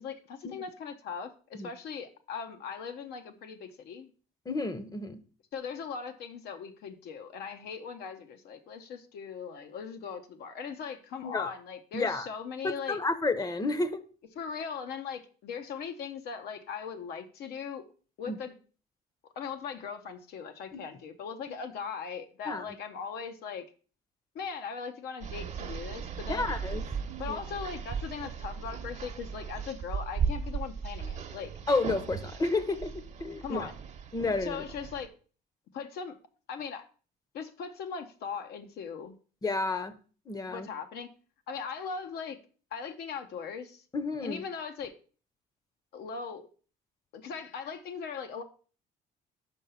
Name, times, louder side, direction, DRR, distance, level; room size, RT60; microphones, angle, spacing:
voice 1, 0.0-4.1 5.5-13.0 14.3-17.8 18.2-18.6 19.4-23.7 24.3-26.5 27.2-31.5 33.4-33.8 34.4-35.1 35.7-36.2 36.5-36.9 37.3-39.1 40.5-41.1 41.5-42.4 42.7-43.8 44.2-44.9 45.9-46.5 47.1-48.4, left 6 dB, 70° left, 7 dB, 0.7 m, -39 dB
voice 2, 4.5-5.2 11.2-11.5 11.9-12.3 12.6-14.0 18.3-18.4 20.7-20.8 22.5-22.6 26.3-26.8 27.3-27.4 31.7-32.9 33.2-33.7 34.1-34.6 39.4-39.9 40.3-40.7 43.9-44.4, left 3 dB, 20° left, 13 dB, 0.7 m, -31 dB
sound 1, 25.2-35.1, right 6 dB, 40° right, 0.8 m, -37 dB
5.6 x 5.4 x 5.4 m, 0.39 s
cardioid pair, 110°, 17 cm